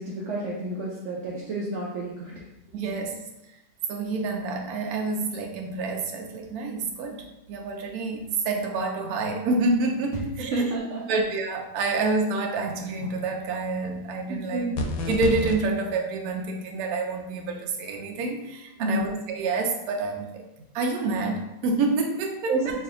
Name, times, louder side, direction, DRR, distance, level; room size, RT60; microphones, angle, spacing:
voice 1, 0.0-2.4 3.1-3.2 10.4-11.1 14.3-14.8 18.8-19.0 22.5-22.8, right 2 dB, 85° right, -4 dB, 0.6 m, -30 dB
voice 2, 2.7-3.1 3.9-10.7 11.1-14.7 15.1-20.4 20.7-22.7, right 3 dB, 70° right, 2 dB, 1.0 m, -28 dB
sound 1, 14.8-15.6, left 2 dB, 80° left, 1.2 m, -28 dB
3.2 x 2.6 x 3.6 m, 0.93 s
omnidirectional pair, 1.9 m